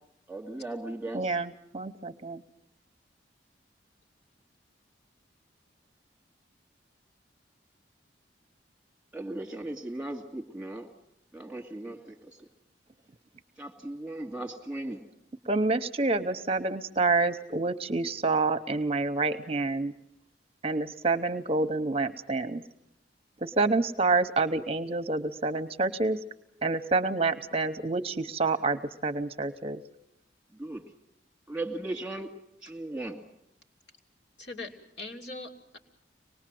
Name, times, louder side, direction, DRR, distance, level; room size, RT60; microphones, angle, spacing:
voice 1, 0.3-1.4 9.1-10.9 11.3-12.3 13.6-15.0 30.5-30.9 31.5-32.3 32.6-33.2, right 2 dB, 5° right, 2 dB, 2.5 m, -37 dB
voice 2, 1.1-2.4 15.5-19.9 20.6-22.6 23.4-26.2 26.6-29.8, right 3 dB, 35° right, 9 dB, 0.8 m, -28 dB
voice 3, 34.4-35.8, left 2 dB, 70° left, 1 dB, 3.0 m, -41 dB
25.0 x 20.0 x 7.6 m, 0.77 s
head